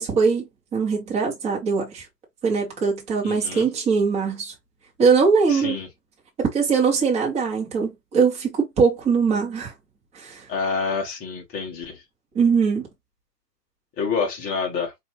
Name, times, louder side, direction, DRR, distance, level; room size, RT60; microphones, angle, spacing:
voice 1, 0.0-2.0 2.4-4.5 5.0-5.8 6.4-9.7 10.1-10.4 12.3-12.9, right 5 dB, 10° right, 1.4 m, -21 dB
voice 2, 3.2-3.7 5.5-5.9 10.5-12.0 14.0-14.9, left 5 dB, 15° left, 1.2 m, -27 dB
5.0 x 2.8 x 3.0 m
hypercardioid pair, 135°, 49 cm